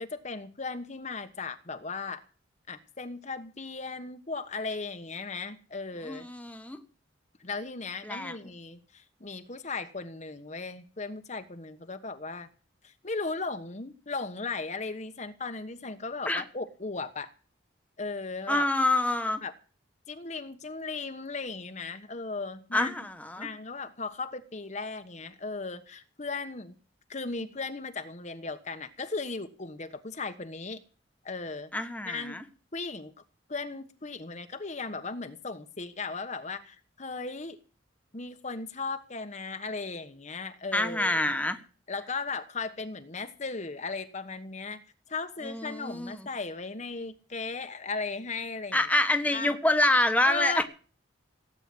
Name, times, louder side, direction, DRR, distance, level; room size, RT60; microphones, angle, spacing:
voice 1, 0.0-2.2 2.7-6.3 7.4-12.5 12.8-17.3 18.0-18.6 19.4-19.5 20.1-22.9 23.4-26.7 27.1-30.8 31.2-31.7 32.0-32.4 32.7-33.1 33.5-37.6 38.1-41.2 41.9-44.8 45.1-48.9 49.3-49.6 50.2-50.6, left 4 dB, 40° left, 1.2 m, -37 dB
voice 2, 6.1-6.8 8.0-8.3 16.3-16.4 18.5-19.4 22.7-23.5 31.7-32.4 40.7-41.6 45.4-46.2 48.7-50.6, left 1 dB, 10° left, 1.4 m, -26 dB
17.5 x 9.0 x 7.8 m
head